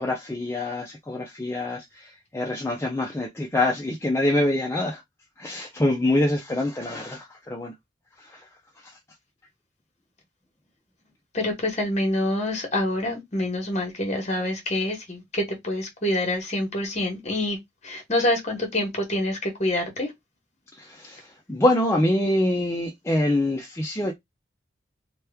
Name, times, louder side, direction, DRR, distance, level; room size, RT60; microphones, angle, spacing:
voice 1, 0.0-5.0 5.4-7.7 8.2-8.4 20.8-24.1, left 1 dB, 15° left, 0.4 m, -25 dB
voice 2, 11.3-17.6 17.8-20.1, left 1 dB, 40° left, 1.1 m, -26 dB
2.9 x 2.2 x 3.3 m
head